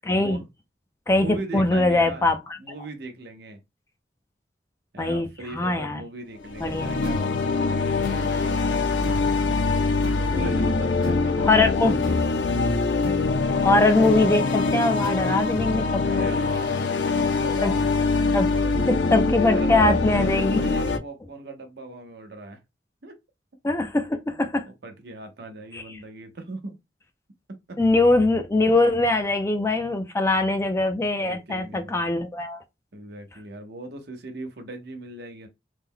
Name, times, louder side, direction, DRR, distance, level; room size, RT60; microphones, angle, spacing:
voice 1, 0.0-0.4 1.1-2.4 5.0-5.3 5.5-6.0 6.6-7.0 11.4-11.9 13.6-16.3 17.6-17.7 18.3-18.6 18.9-20.6 23.6-24.6 25.7-25.8 27.8-32.6, left 2 dB, 15° left, 0.3 m, -22 dB
voice 2, 1.2-2.3 2.6-3.6 4.9-9.0 10.1-12.3 16.0-17.9 18.5-18.8 19.4-22.6 23.0-23.2 23.8-23.9 24.3-26.8 27.5-28.1 31.2-32.0 32.9-35.5, right 2 dB, 60° right, 0.8 m, -39 dB
sound 1, 6.4-21.0, left 3 dB, 75° left, 0.4 m, -24 dB
sound 2, 7.0-17.9, left 1 dB, 50° left, 1.0 m, -39 dB
3.2 x 2.1 x 3.6 m
head